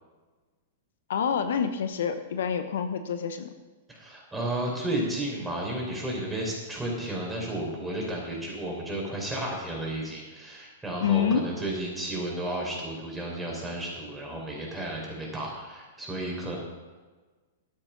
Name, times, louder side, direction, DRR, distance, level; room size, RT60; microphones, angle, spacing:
voice 1, 1.1-3.5 11.0-11.4, left 7 dB, 75° left, 9 dB, 0.9 m, -27 dB
voice 2, 3.9-16.6, right 1 dB, 5° right, -3 dB, 4.6 m, -33 dB
12.0 x 8.8 x 6.0 m, 1.3 s
hypercardioid pair, 120°, 0 cm